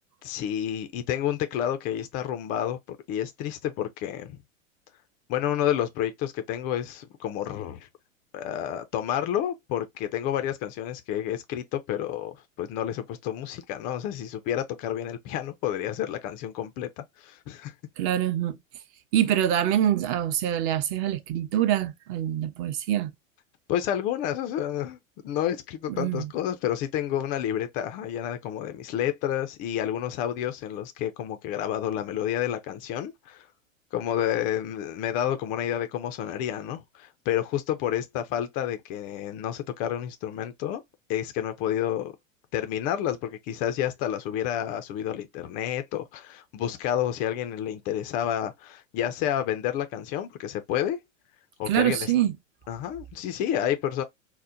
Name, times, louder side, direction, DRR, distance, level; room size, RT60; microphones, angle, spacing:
voice 1, 0.2-4.4 5.3-7.9 8.3-17.7 23.7-25.0 25.2-33.5 33.9-40.8 41.1-42.1 42.5-51.0 51.6-52.1 52.7-54.0, left 10 dB, 20° left, 0.3 m, -30 dB
voice 2, 18.0-18.6 19.1-23.1 25.9-26.3 51.7-52.3, right 11 dB, 30° right, 0.6 m, -25 dB
4.3 x 2.1 x 2.4 m
figure-of-eight pair, 95°, 40 cm